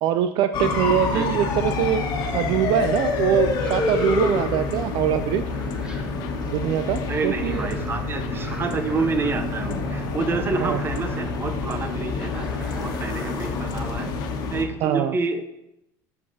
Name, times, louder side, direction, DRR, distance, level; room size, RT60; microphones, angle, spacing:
voice 1, 0.0-2.1 2.3-5.4 6.4-7.7 10.6-10.8 14.8-15.2, right 10 dB, 60° right, 10 dB, 0.3 m, -23 dB
sound 1, 0.5-14.6, left 4 dB, 50° left, 1.2 m, -27 dB
sound 2, 0.7-14.8, left 5 dB, 75° left, 0.7 m, -38 dB
voice 2, 1.1-1.5 7.1-14.1 14.5-15.5, right 4 dB, 25° right, 8 dB, 0.7 m, -28 dB
sound 3, 3.4-5.0 5.3-6.6 7.4-8.0 8.3-10.1 10.4-11.4 11.7-12.0 12.2-13.3 13.7-14.1, equal, 10° right, 1.3 m, -44 dB
8.4 x 6.6 x 2.8 m, 0.88 s
supercardioid pair, 120°, 9 cm